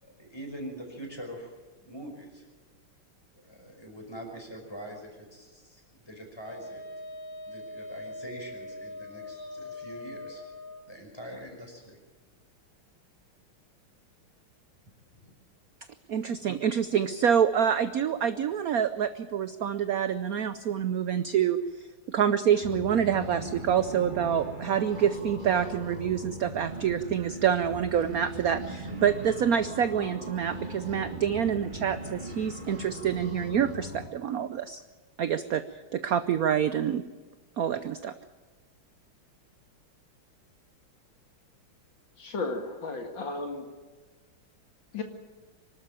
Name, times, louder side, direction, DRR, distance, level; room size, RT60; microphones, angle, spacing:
voice 1, 0.0-1.5 1.8-2.4 3.4-6.8 7.5-10.4 10.9-12.0 15.1-15.3, equal, 10° left, 1 dB, 5.5 m, -43 dB
Wind instrument woodwind instrument, 6.4-10.8, left 2 dB, 45° left, 2.0 m, -42 dB
voice 2, 16.1-21.6 22.1-34.8 35.2-35.6 35.9-37.0 37.6-38.1, right 8 dB, 65° right, 11 dB, 0.9 m, -27 dB
sound 1, 22.6-34.1, right 1 dB, 20° right, 2.5 m, -39 dB
voice 3, 42.2-43.7 44.9-45.0, left 3 dB, 60° left, 4 dB, 2.6 m, -34 dB
25.0 x 12.5 x 8.9 m, 1.3 s
omnidirectional pair, 2.3 m